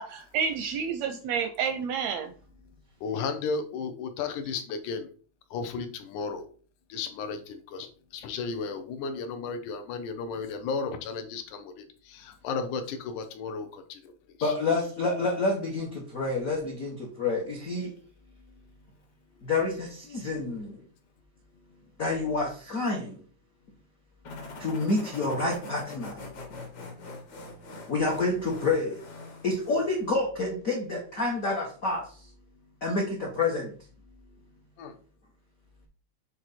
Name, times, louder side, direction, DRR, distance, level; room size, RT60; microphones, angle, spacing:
voice 1, 0.0-2.3, right 6 dB, 80° right, 8 dB, 1.5 m, -30 dB
voice 2, 3.0-5.1 5.5-5.9 6.1-6.4 6.9-7.4 7.7-7.9 8.2-11.6 12.4-13.7 14.4-14.5 34.8-34.9, left 5 dB, 85° left, 8 dB, 2.3 m, -33 dB
voice 3, 14.4-17.9 19.4-20.8 22.0-23.2 24.6-26.2 27.9-29.0 29.4-32.1 32.8-33.7, left 3 dB, 70° left, -1 dB, 0.8 m, -28 dB
sound 1, 24.2-30.1, left 2 dB, 50° left, 1.4 m, -43 dB
7.7 x 3.2 x 4.2 m, 0.42 s
omnidirectional pair, 3.4 m